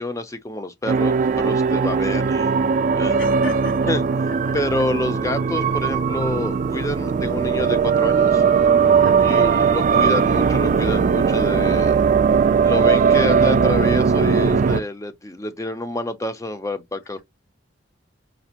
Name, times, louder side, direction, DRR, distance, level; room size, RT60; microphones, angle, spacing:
voice 1, 0.0-2.5 3.0-3.2 3.9-4.0 4.5-8.5 9.2-12.0 12.6-17.2, left 1 dB, 15° left, 0.6 m, -28 dB
sound 1, 0.9-14.8, right 6 dB, 45° right, 0.3 m, -19 dB
voice 2, 3.2-3.9 4.3-4.6 9.0-9.5, left 4 dB, 80° left, 2.8 m, -34 dB
5.2 x 2.5 x 2.9 m
head